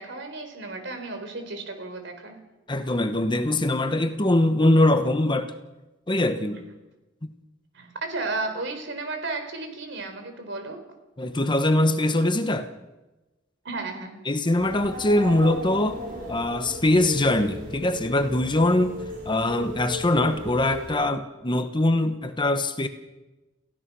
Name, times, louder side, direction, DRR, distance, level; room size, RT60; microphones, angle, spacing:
voice 1, 0.0-2.4 6.5-6.6 7.7-10.8 13.6-14.2, right 3 dB, 65° right, 4.2 m, -33 dB
voice 2, 2.7-5.5 6.1-6.6 7.2-7.3 11.2-12.7 14.2-16.0 16.3-19.0 19.2-22.9, left 1 dB, 25° left, 1.1 m, -22 dB
sound 1, 14.6-21.0, right 1 dB, 45° right, 6.3 m, -37 dB
29.5 x 15.5 x 6.2 m
head